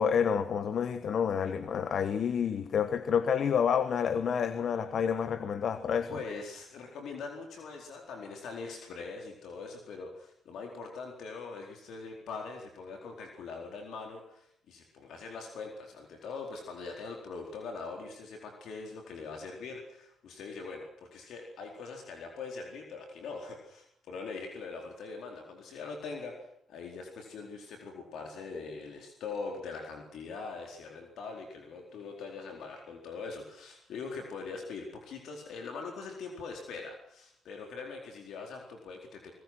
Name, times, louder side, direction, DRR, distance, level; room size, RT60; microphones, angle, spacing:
voice 1, 0.0-6.2, left 7 dB, 60° left, 1.4 m, -29 dB
voice 2, 6.1-39.3, left 4 dB, 75° left, 4.3 m, -42 dB
26.0 x 21.0 x 6.3 m
cardioid pair, 90°, 0 cm